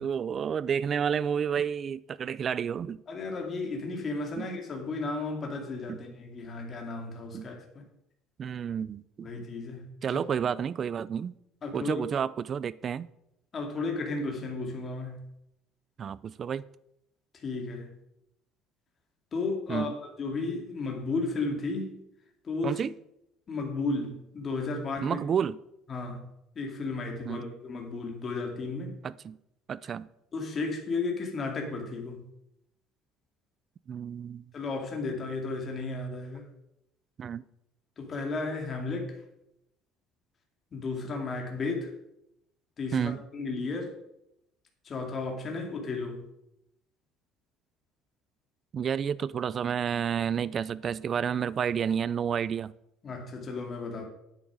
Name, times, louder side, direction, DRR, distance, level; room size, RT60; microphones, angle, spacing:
voice 1, 0.0-3.0 4.4-4.5 5.9-6.0 7.3-7.5 8.4-9.3 10.0-11.3 11.7-13.1 16.0-16.6 19.7-19.9 22.6-22.9 25.0-25.6 27.3-27.4 29.0-29.4 29.7-30.1 33.9-34.4 37.2-37.4 42.9-43.2 48.7-52.7, right 7 dB, 35° right, 0.4 m, -30 dB
voice 2, 3.1-7.8 9.2-9.9 10.1-10.2 11.6-12.1 13.5-15.3 17.3-17.9 19.3-22.0 22.4-22.8 23.5-25.2 25.9-26.2 26.5-29.0 30.3-32.2 34.5-36.5 38.0-39.2 40.7-41.9 42.8-43.9 44.8-46.3 53.0-54.1, left 3 dB, 30° left, 2.2 m, -34 dB
9.9 x 9.1 x 4.9 m
cardioid pair, 150°, 0 cm